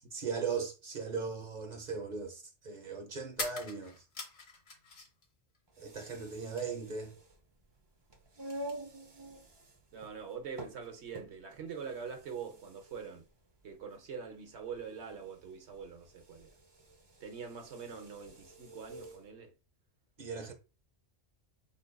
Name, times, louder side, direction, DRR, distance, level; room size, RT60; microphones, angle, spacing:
voice 1, 0.1-4.0 5.8-7.1 20.2-20.5, right 5 dB, 45° right, 1.0 m, -38 dB
sound 1, 1.0-1.1 3.3-5.3 5.5-6.4, left 3 dB, 65° left, 1.3 m, -43 dB
sound 2, 5.7-19.3, right 1 dB, 30° right, 0.6 m, -49 dB
voice 2, 9.9-13.2 13.6-16.5 17.2-19.5, right 6 dB, 75° right, 1.2 m, -44 dB
5.1 x 3.8 x 2.2 m
omnidirectional pair, 1.1 m